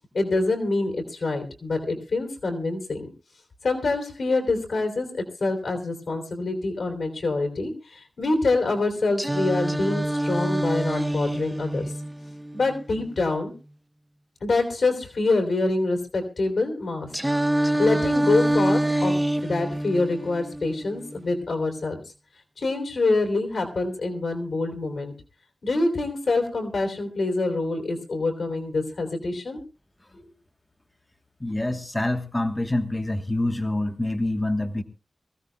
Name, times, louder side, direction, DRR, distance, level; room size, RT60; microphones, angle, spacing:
voice 1, 0.1-3.1 3.6-11.9 12.5-13.5 14.4-17.1 17.5-19.1 19.4-22.0 22.6-25.1 25.6-29.6, left 3 dB, 85° left, 3 dB, 3.3 m, -26 dB
Singing, 9.2-13.2 17.1-21.2, right 1 dB, 10° right, 0.8 m, -26 dB
voice 2, 31.4-34.8, left 1 dB, 20° left, 6 dB, 1.2 m, -26 dB
24.0 x 16.0 x 2.3 m, 0.31 s
wide cardioid pair, 85°, 0 cm